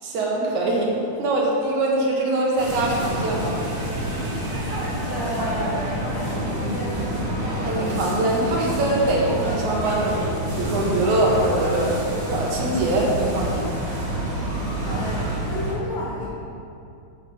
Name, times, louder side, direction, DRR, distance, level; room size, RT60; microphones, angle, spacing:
voice 1, 0.0-3.6 7.6-10.3 10.6-12.1 12.3-13.7, right 2 dB, 70° right, -3 dB, 2.8 m, -23 dB
sound 1, 2.6-15.7, right 1 dB, 25° right, 2.4 m, -27 dB
voice 2, 5.1-5.8 6.1-7.0 14.9-16.4, equal, 70° left, -7 dB, 3.9 m, -31 dB
9.1 x 7.4 x 5.0 m, 2.5 s
omnidirectional pair, 3.7 m